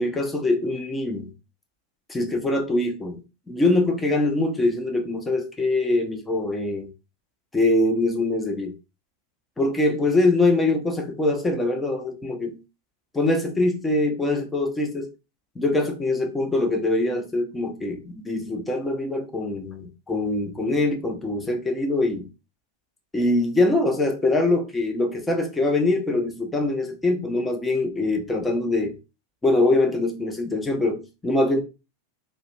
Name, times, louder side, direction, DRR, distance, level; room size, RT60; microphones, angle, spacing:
voice 1, 0.0-1.3 2.1-6.9 7.5-8.7 9.6-12.6 13.1-15.1 15.6-22.3 23.1-28.9 29.4-31.6, left 2 dB, 10° left, 0.5 m, -23 dB
2.3 x 2.0 x 3.1 m
figure-of-eight pair, 90°, 0 cm